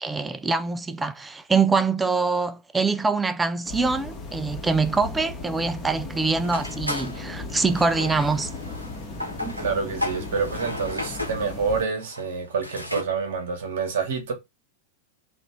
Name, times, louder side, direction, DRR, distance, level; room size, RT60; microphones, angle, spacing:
voice 1, 0.0-8.5 9.4-9.6, right 4 dB, 10° right, 0.3 m, -24 dB
sound 1, 3.6-11.8, left 3 dB, 30° left, 1.0 m, -36 dB
sound 2, 6.4-13.0, left 1 dB, 90° right, 0.6 m, -34 dB
voice 2, 9.6-14.3, right 5 dB, 60° right, 1.0 m, -27 dB
3.1 x 2.4 x 4.2 m
figure-of-eight pair, 90°, 0 cm